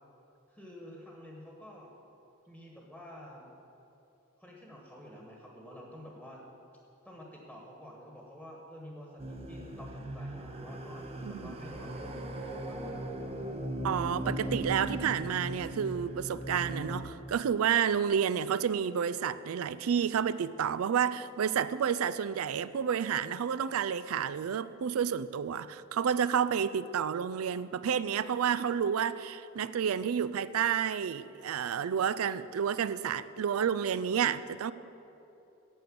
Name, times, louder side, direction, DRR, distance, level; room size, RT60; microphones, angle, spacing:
voice 1, 0.5-1.9 2.5-3.5 4.4-6.4 7.0-13.0, equal, ahead, 1.4 m, -49 dB
sound 1, 9.2-17.0, right 1 dB, 30° right, 0.8 m, -38 dB
voice 2, 11.2-11.5 13.8-34.7, right 7 dB, 85° right, 0.4 m, -30 dB
10.0 x 6.7 x 8.6 m
head